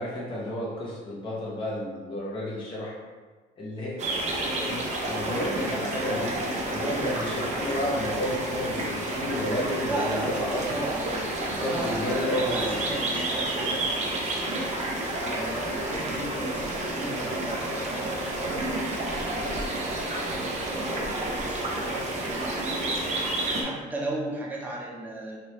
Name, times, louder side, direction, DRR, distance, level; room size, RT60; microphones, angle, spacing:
voice 1, 0.0-2.9 3.6-4.0 4.5-6.4 6.7-10.7 11.5-12.8, left 1 dB, 30° left, -6 dB, 0.7 m, -31 dB
sound 1, 4.0-23.6, right 1 dB, 45° right, 0.7 m, -30 dB
voice 2, 6.7-7.4 8.1-8.3 9.8-14.6 15.2-19.9 20.3-21.1 21.4-25.4, right 1 dB, 10° right, -5 dB, 0.8 m, -36 dB
3.2 x 2.6 x 3.0 m, 1.4 s
cardioid pair, 110°, 17 cm